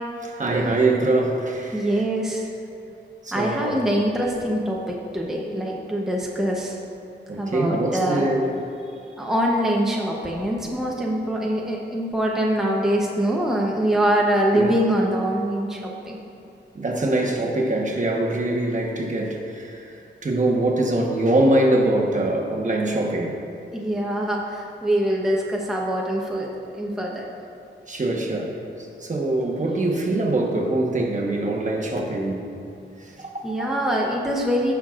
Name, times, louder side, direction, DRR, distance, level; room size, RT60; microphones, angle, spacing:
voice 1, 0.2-2.0 3.2-3.8 7.3-8.6 14.5-14.8 16.7-19.9 20.2-23.4 27.9-28.5 29.0-32.4 33.2-33.7, right 2 dB, 40° right, -1 dB, 1.1 m, -23 dB
voice 2, 1.7-2.5 3.3-6.8 7.4-8.3 9.2-16.2 23.7-26.5 26.7-27.2 33.4-34.7, right 1 dB, ahead, -2 dB, 0.8 m, -24 dB
17.0 x 5.8 x 2.5 m, 2.5 s
wide cardioid pair, 110°, 20 cm